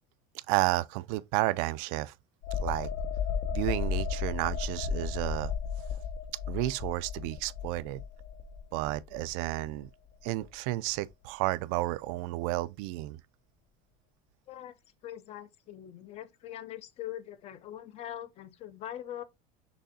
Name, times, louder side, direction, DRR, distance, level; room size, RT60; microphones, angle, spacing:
voice 1, 0.3-2.1 2.6-2.9 3.5-5.5 6.5-8.0 8.7-9.9 10.2-13.2, right 18 dB, 65° right, 0.4 m, -31 dB
sound 1, 2.4-9.9 10.2-10.4, left 6 dB, 60° left, 1.0 m, -34 dB
voice 2, 15.0-19.2, left 11 dB, 35° left, 0.5 m, -42 dB
6.2 x 3.3 x 2.6 m
cardioid pair, 160°, 19 cm